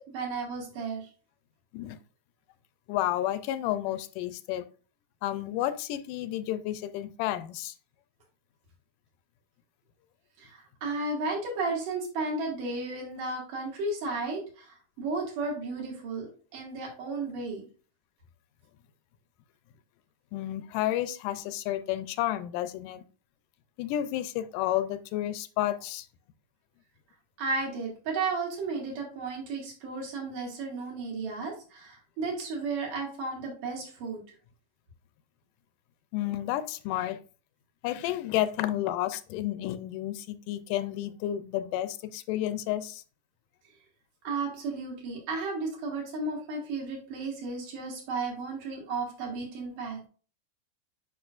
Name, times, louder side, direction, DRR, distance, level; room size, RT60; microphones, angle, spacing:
voice 1, 0.1-1.1 10.4-16.3 16.5-17.7 27.4-34.2 44.2-50.0, right 3 dB, 90° right, 3.8 m, -33 dB
voice 2, 2.9-4.7 5.2-7.7 20.3-23.0 23.8-26.1 36.1-37.2 37.8-43.0, left 13 dB, 90° left, 2.1 m, -31 dB
8.5 x 5.3 x 2.5 m
omnidirectional pair, 3.6 m